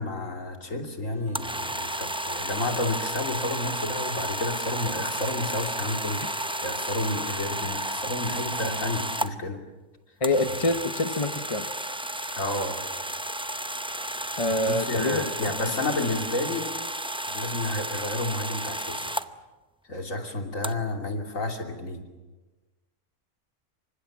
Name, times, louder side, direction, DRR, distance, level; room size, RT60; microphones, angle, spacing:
voice 1, 0.0-9.6 12.4-12.8 14.6-16.7 17.3-19.1 19.8-22.1, left 2 dB, 65° left, 4 dB, 3.2 m, -31 dB
sound 1, 1.1-6.8, right 1 dB, 50° left, 7.8 m, -51 dB
sound 2, 1.3-9.3 10.2-19.3 20.6-20.7, right 1 dB, 10° right, 0.3 m, -32 dB
voice 2, 10.2-11.7 14.4-15.5, left 2 dB, 25° left, 8 dB, 1.1 m, -26 dB
28.0 x 25.0 x 7.4 m, 1.2 s
omnidirectional pair, 1.5 m